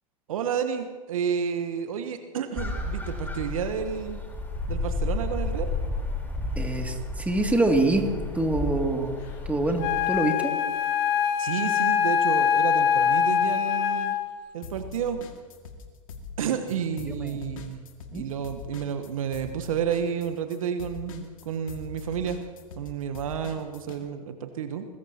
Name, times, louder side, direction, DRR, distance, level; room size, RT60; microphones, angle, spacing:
voice 1, 0.3-4.2 4.7-5.7 11.4-14.2 14.5-15.2 16.4-17.8 18.1-22.4 22.8-24.9, right 8 dB, 70° right, 7 dB, 1.2 m, -30 dB
sound 1, 2.6-10.1, left 2 dB, 10° left, 3.9 m, -32 dB
voice 2, 6.6-8.1 8.3-9.1 9.4-10.5 16.4-16.5 17.0-17.4 18.1-18.2, right 2 dB, 10° right, 2 dB, 2.5 m, -25 dB
Wind instrument woodwind instrument, 9.8-14.4, left 8 dB, 50° left, 1.7 m, -24 dB
sound 2, 14.6-24.0, left 5 dB, 65° left, 2.1 m, -42 dB
24.0 x 20.5 x 2.9 m, 1.5 s
figure-of-eight pair, 90°, 18 cm